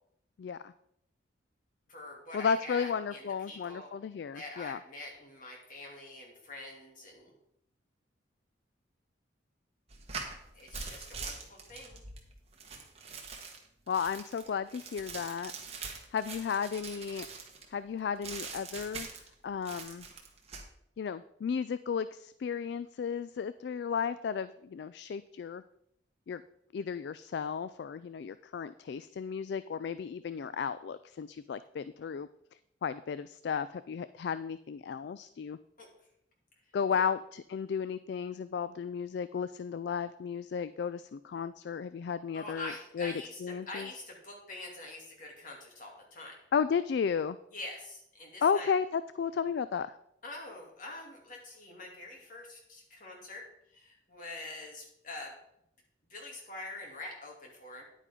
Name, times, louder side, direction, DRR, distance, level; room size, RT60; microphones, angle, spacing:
voice 1, 0.4-0.7 2.3-4.8 13.9-15.5 16.1-17.3 17.7-19.1 19.4-20.1 21.0-25.6 26.3-26.4 26.7-32.3 32.8-35.6 36.7-43.1 43.4-43.9 46.5-47.4 48.4-49.9, left 6 dB, 60° left, 14 dB, 0.3 m, -34 dB
voice 2, 1.9-3.9 4.3-7.3 10.5-12.0 35.8-35.9 36.9-37.1 42.3-46.4 47.5-48.7 50.2-55.3 56.1-57.8, left 2 dB, 45° left, -1 dB, 2.7 m, -45 dB
sound 1, 9.9-17.7 18.2-19.3 19.6-20.7, right 5 dB, 35° right, 1.5 m, -43 dB
9.9 x 9.1 x 3.7 m, 0.75 s
head